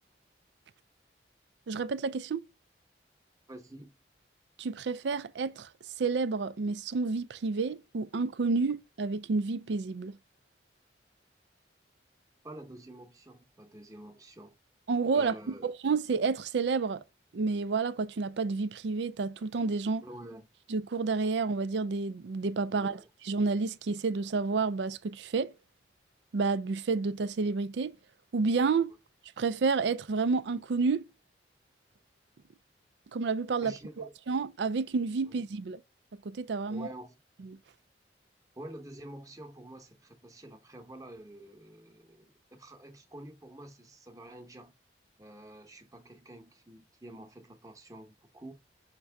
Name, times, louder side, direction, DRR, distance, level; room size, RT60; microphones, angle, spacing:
voice 1, 1.7-2.5 4.6-5.7 6.0-10.2 14.9-15.3 15.6-17.0 17.3-20.0 20.7-23.0 23.3-25.5 26.3-27.9 28.3-28.9 29.4-31.1 33.1-35.8 36.2-36.9, right 4 dB, 75° right, 0.4 m, -30 dB
voice 2, 3.5-3.9 12.4-14.6 15.1-15.7 20.0-20.5 22.7-23.1 33.6-34.1 36.7-37.2 38.6-44.7 45.2-48.5, right 1 dB, 20° right, 0.9 m, -48 dB
6.0 x 2.7 x 3.4 m
head